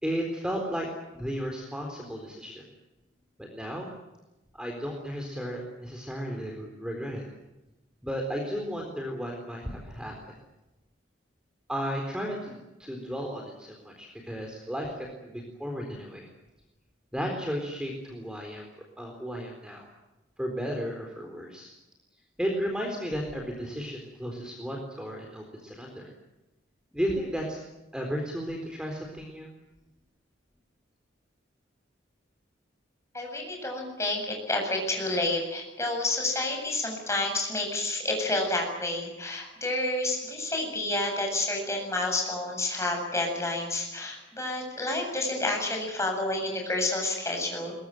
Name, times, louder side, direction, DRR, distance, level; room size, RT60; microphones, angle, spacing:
voice 1, 0.0-2.6 3.4-3.9 4.5-7.2 8.0-10.1 11.7-16.3 17.1-18.6 19.0-19.9 20.4-21.7 22.4-26.1 26.9-27.6 27.9-29.5, equal, 5° right, 1 dB, 4.0 m, -34 dB
voice 2, 33.1-47.7, left 2 dB, 15° left, 2 dB, 7.8 m, -29 dB
22.5 x 21.5 x 9.1 m, 1.0 s
head